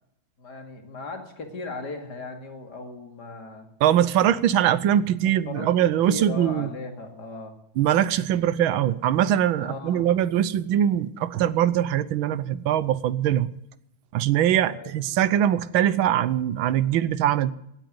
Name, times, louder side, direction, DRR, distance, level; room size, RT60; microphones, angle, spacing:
voice 1, 0.4-3.7 4.2-4.3 5.2-5.7 6.1-7.5 9.6-10.1 14.7-14.9, left 3 dB, 55° left, 5 dB, 2.9 m, -37 dB
voice 2, 3.8-6.7 7.8-13.5 14.1-17.5, right 11 dB, 90° right, 17 dB, 1.6 m, -22 dB
17.0 x 9.1 x 9.4 m, 0.80 s
omnidirectional pair, 2.2 m